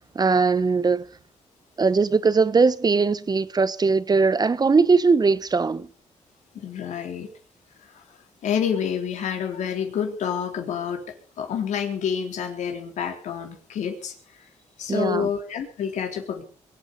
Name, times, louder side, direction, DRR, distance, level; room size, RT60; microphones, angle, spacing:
voice 1, 0.1-1.1 1.8-5.9 14.9-15.3, right 4 dB, 35° right, 1.1 m, -20 dB
voice 2, 6.5-7.3 8.4-14.1 14.8-16.4, left 7 dB, 75° left, 3.7 m, -28 dB
22.5 x 9.0 x 7.0 m
cardioid pair, 75°, 12 cm